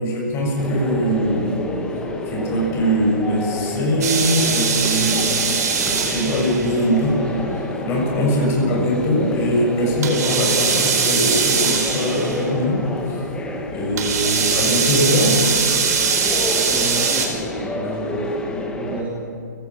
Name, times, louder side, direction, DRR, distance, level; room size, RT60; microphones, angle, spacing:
voice 1, 0.0-1.6 2.3-5.4 5.7-7.2 7.5-12.8 13.1-13.2 13.7-15.4, equal, 25° left, -1 dB, 7.0 m, -21 dB
sound 1, 0.6-19.0, left 1 dB, 10° left, 2.0 m, -29 dB
sound 2, 4.0-6.8 10.0-12.4 14.0-17.3, right 6 dB, 55° right, 4.4 m, -21 dB
voice 2, 8.4-8.8 16.5-18.3 18.8-19.2, right 2 dB, 15° right, -3 dB, 2.7 m, -30 dB
29.5 x 17.5 x 6.3 m, 2.4 s
hypercardioid pair, 145°, 10 cm